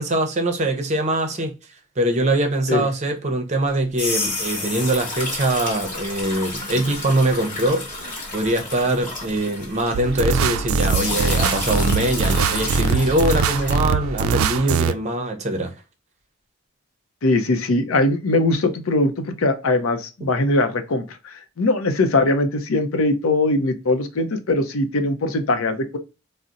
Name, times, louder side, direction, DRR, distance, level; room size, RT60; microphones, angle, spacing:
voice 1, 0.0-1.5 2.0-15.7, right 1 dB, 35° right, 0.6 m, -23 dB
sound 1, 3.7-10.4 10.8-13.8, left 2 dB, 40° left, 1.2 m, -30 dB
sound 2, 9.9-14.9, right 5 dB, 90° right, 0.3 m, -22 dB
voice 2, 17.2-26.0, left 2 dB, 80° left, 0.6 m, -21 dB
4.0 x 2.0 x 2.4 m
head